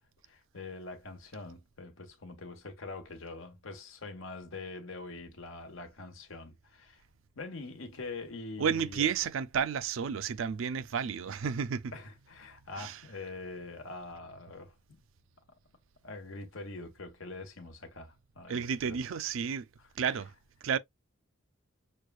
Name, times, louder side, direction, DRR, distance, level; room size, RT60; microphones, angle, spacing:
voice 1, 0.2-7.0 7.3-9.1 11.9-15.0 16.0-19.0 20.0-20.1, left 3 dB, 75° left, 1.1 m, -44 dB
voice 2, 8.6-11.9 12.8-13.0 18.5-19.7 20.0-20.3 20.6-20.8, right 7 dB, 75° right, 0.4 m, -31 dB
6.4 x 2.3 x 2.3 m
head